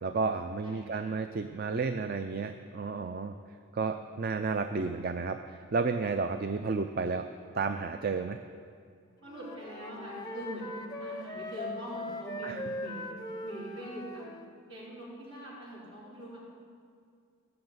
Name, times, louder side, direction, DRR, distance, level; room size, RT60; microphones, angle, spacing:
voice 1, 0.0-3.4 3.7-7.3 7.5-8.4 12.4-12.6, right 4 dB, 45° right, 8 dB, 0.4 m, -32 dB
voice 2, 0.6-1.1 9.2-13.1 13.4-14.2 14.7-16.4, equal, 60° right, -5 dB, 4.0 m, -43 dB
Wind instrument woodwind instrument, 9.2-14.5, left 1 dB, 20° left, 0.7 m, -40 dB
16.0 x 6.9 x 8.0 m, 2.2 s
head